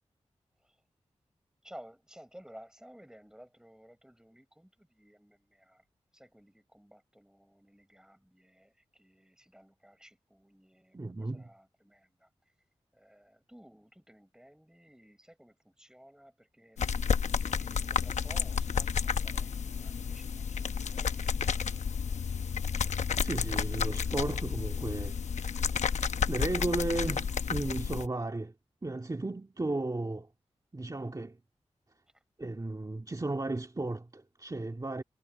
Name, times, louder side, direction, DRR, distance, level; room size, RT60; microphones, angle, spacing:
voice 1, 1.6-5.8 6.1-12.3 12.9-16.8 17.2-21.8 32.1-32.2, equal, 5° right, 6.5 m, -56 dB
voice 2, 10.9-11.5 23.2-25.7 26.3-28.5 28.8-30.3 30.7-31.4 32.4-35.0, right 2 dB, 30° right, 2.0 m, -34 dB
sound 1, 16.8-28.1, left 6 dB, 85° left, 0.9 m, -31 dB
cardioid pair, 45°, 12 cm